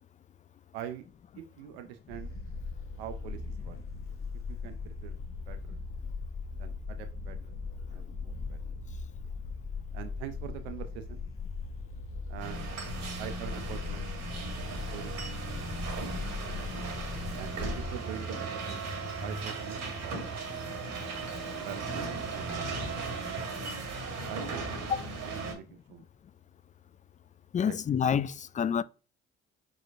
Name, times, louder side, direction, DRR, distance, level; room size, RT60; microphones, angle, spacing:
voice 1, 0.7-1.0 1.3-2.3 3.0-3.7 4.5-5.2 5.5-5.8 6.6-7.5 7.9-8.6 9.9-11.2 12.3-12.8 13.2-14.1 14.6-15.3 15.8-16.6 17.4-20.3 21.6-22.5 23.0-23.6 24.1-24.6 25.2-26.0 27.7-27.8, right 10 dB, 90° right, 0.6 m, -44 dB
sound 1, 2.1-18.0, left 4 dB, 45° left, 1.2 m, -39 dB
sound 2, 12.4-25.5, right 3 dB, 65° right, 2.0 m, -37 dB
voice 2, 27.5-28.8, left 7 dB, 25° left, 0.3 m, -28 dB
4.8 x 4.3 x 2.5 m
hypercardioid pair, 60°, 30 cm